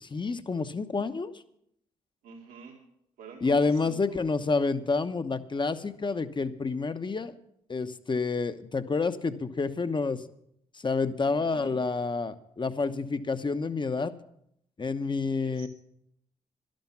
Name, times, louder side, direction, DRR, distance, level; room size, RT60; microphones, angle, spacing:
voice 1, 0.0-1.3 3.4-7.3 7.7-10.2 10.7-14.1 14.8-15.7, left 4 dB, 35° left, 11 dB, 1.0 m, -29 dB
voice 2, 2.2-2.8 3.2-4.3 11.2-11.8 15.4-15.7, right 5 dB, 85° right, 2 dB, 2.1 m, -48 dB
11.5 x 11.5 x 6.0 m, 0.74 s
supercardioid pair, 50°, 14 cm